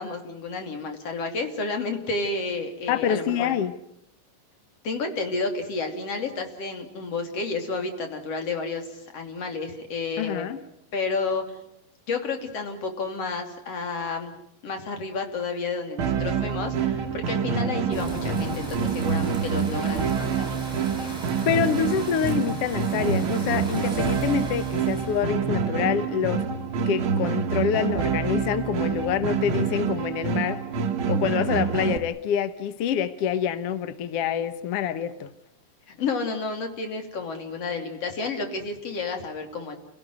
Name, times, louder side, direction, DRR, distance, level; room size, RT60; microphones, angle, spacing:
voice 1, 0.0-3.5 4.8-10.6 10.9-11.6 12.1-14.3 14.6-20.5 35.9-39.8, left 4 dB, 45° left, 4 dB, 3.6 m, -31 dB
voice 2, 2.9-3.7 10.2-10.6 21.0-21.1 21.5-26.4 26.9-30.6 31.1-35.3, left 8 dB, 85° left, 13 dB, 1.3 m, -26 dB
sound 1, 16.0-32.0, right 6 dB, 60° right, 1.3 m, -27 dB
sound 2, 17.9-25.3, right 1 dB, 10° right, 6.7 m, -37 dB
29.0 x 17.5 x 9.5 m, 0.77 s
omnidirectional pair, 4.3 m